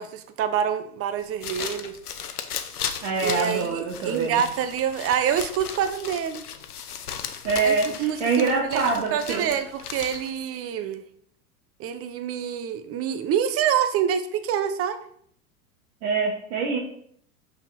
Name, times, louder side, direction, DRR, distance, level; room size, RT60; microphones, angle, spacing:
voice 1, 0.0-2.0 3.2-6.4 7.6-8.8 9.1-11.0 11.8-15.0, right 9 dB, 30° right, 10 dB, 0.8 m, -26 dB
sound 1, 1.2-10.4, left 8 dB, 80° left, 0.8 m, -36 dB
voice 2, 3.0-4.4 7.4-9.5 16.0-16.8, right 4 dB, 55° right, -1 dB, 1.6 m, -25 dB
5.9 x 5.8 x 4.3 m, 0.65 s
figure-of-eight pair, 90°, 45 cm